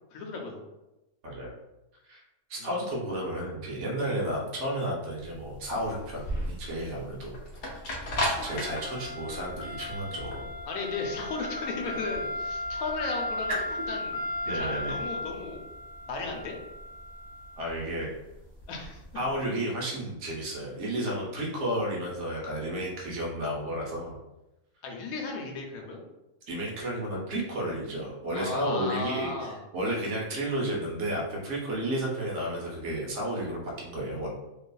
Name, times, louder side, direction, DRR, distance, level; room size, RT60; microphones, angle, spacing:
voice 1, 0.1-0.6 2.6-2.7 10.7-13.6 13.9-14.2 14.5-15.6 16.1-16.6 18.7-19.0 24.8-26.0 28.3-29.6, left 3 dB, 90° left, 1 dB, 1.1 m, -35 dB
voice 2, 1.2-1.5 2.0-2.2 2.5-7.4 7.6-8.0 8.4-10.5 14.5-15.0 17.6-18.1 19.1-24.2 26.5-34.3, right 1 dB, 65° right, -3 dB, 0.9 m, -32 dB
sound 1, 5.2-19.3, left 1 dB, 60° left, 0.6 m, -35 dB
2.6 x 2.4 x 2.2 m, 0.98 s
omnidirectional pair, 1.5 m